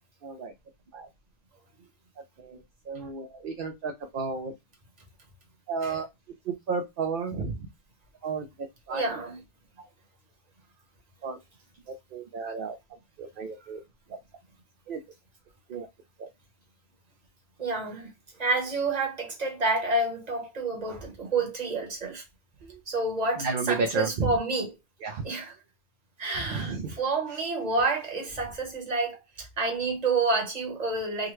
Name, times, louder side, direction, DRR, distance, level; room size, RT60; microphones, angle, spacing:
voice 1, 0.2-0.5 0.9-1.1 2.4-4.5 5.7-6.1 6.4-7.7 8.2-9.0 9.8-9.9 11.2-11.4 11.9-12.8 13.2-13.8 14.9-15.0 15.7-15.9 16.2-16.3 22.6-22.8 23.4-24.4 25.0-25.2 26.4-27.0, right 4 dB, 60° right, 0.7 m, -32 dB
voice 2, 8.9-9.4 17.6-18.1 18.4-22.2 22.9-24.7 25.2-25.5 26.2-31.3, right 3 dB, 40° right, 1.1 m, -29 dB
3.6 x 2.1 x 3.1 m
omnidirectional pair, 1.1 m